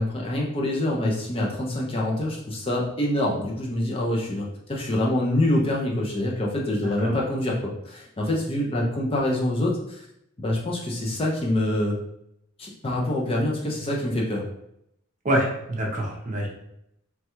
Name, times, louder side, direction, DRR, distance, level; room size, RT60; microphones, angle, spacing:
voice 1, 0.0-10.1 10.4-12.0 12.6-14.5, left 1 dB, 25° left, -2 dB, 0.4 m, -25 dB
voice 2, 15.2-16.5, right 1 dB, 35° right, -1 dB, 0.6 m, -25 dB
3.1 x 2.2 x 2.9 m, 0.78 s
head